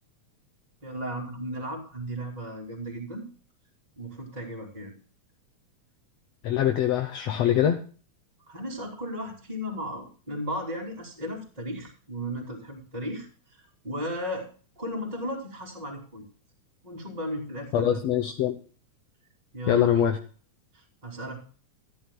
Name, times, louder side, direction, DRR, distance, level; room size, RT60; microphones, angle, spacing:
voice 1, 0.8-3.3 4.0-4.9 8.5-14.5 14.8-16.2 16.8-18.1 19.5-20.1 20.7-21.4, equal, 15° right, -3 dB, 2.9 m, -35 dB
voice 2, 6.4-7.8 17.7-18.6 19.7-20.2, left 10 dB, 65° left, 6 dB, 1.9 m, -23 dB
14.0 x 13.0 x 2.2 m, 0.39 s
omnidirectional pair, 3.4 m